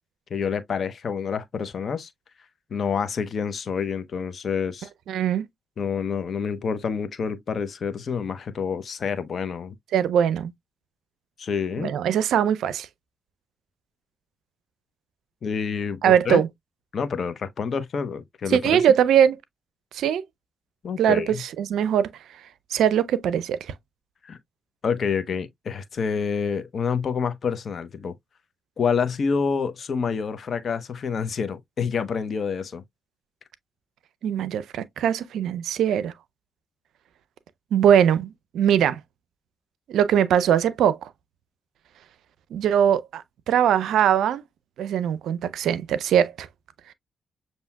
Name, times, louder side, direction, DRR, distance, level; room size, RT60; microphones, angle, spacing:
voice 1, 0.3-2.1 2.7-4.9 5.8-9.8 11.4-11.9 15.4-16.4 16.9-18.6 20.8-21.4 24.2-24.4 24.8-28.1 28.8-32.8, left 6 dB, 60° left, 0.6 m, -27 dB
voice 2, 5.1-5.5 9.9-10.5 11.8-12.9 16.0-16.5 18.5-19.4 19.9-20.2 21.0-22.1 22.7-23.6 34.2-36.1 37.7-39.0 39.9-41.1 42.5-44.4 44.8-46.5, right 9 dB, 80° right, 0.4 m, -21 dB
6.9 x 2.7 x 2.2 m
supercardioid pair, 45°, 0 cm